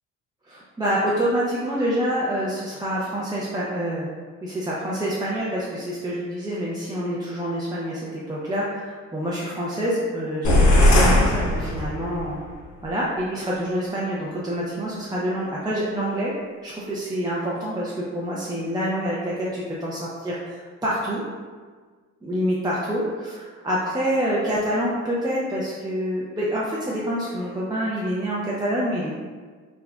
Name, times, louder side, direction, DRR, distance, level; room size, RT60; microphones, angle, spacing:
voice 1, 0.4-4.1 4.4-12.4 12.8-16.3 16.6-21.2 22.2-29.2, equal, 15° right, -7 dB, 0.5 m, -27 dB
sound 1, 10.4-12.3, left 1 dB, 70° left, 0.8 m, -18 dB
4.8 x 2.3 x 2.2 m, 1.5 s
cardioid pair, 90°, 30 cm